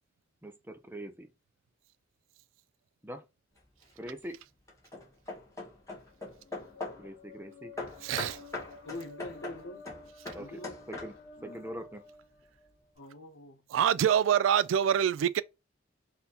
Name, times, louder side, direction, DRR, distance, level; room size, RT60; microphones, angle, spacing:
voice 1, 0.4-1.3 3.0-3.2 4.0-4.4 7.0-7.7 10.3-10.6 10.9-11.1 11.4-12.0, equal, 10° right, 0.6 m, -42 dB
Hammer / Wood, 3.6-4.0 4.7-7.1 7.8-11.4, left 2 dB, 15° left, 1.1 m, -42 dB
sound 1, 6.1-12.9, left 3 dB, 50° left, 1.0 m, -52 dB
voice 2, 8.0-8.4 13.7-15.4, right 9 dB, 85° right, 0.3 m, -25 dB
voice 3, 8.8-9.8 10.4-10.8 11.4-11.6 13.0-13.6, left 1 dB, 85° left, 0.8 m, -44 dB
4.2 x 2.7 x 3.9 m
head